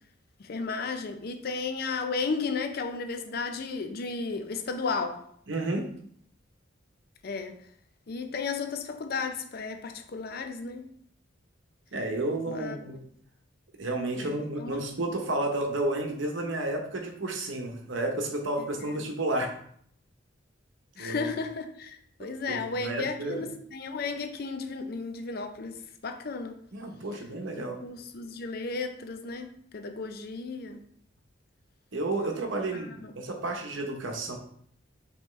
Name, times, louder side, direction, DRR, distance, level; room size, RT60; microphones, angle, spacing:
voice 1, 0.4-5.2 7.2-7.6 8.1-10.8 12.5-12.8 14.1-14.8 18.8-19.0 21.0-26.6 27.6-29.5 29.7-30.8 32.7-33.1, left 4 dB, 50° left, 0.5 m, -34 dB
voice 2, 5.5-5.8 11.9-13.0 13.8-19.5 21.0-21.3 22.2-23.5 26.7-27.8 31.9-34.4, right 2 dB, 70° right, 0.8 m, -31 dB
5.4 x 2.9 x 3.1 m
head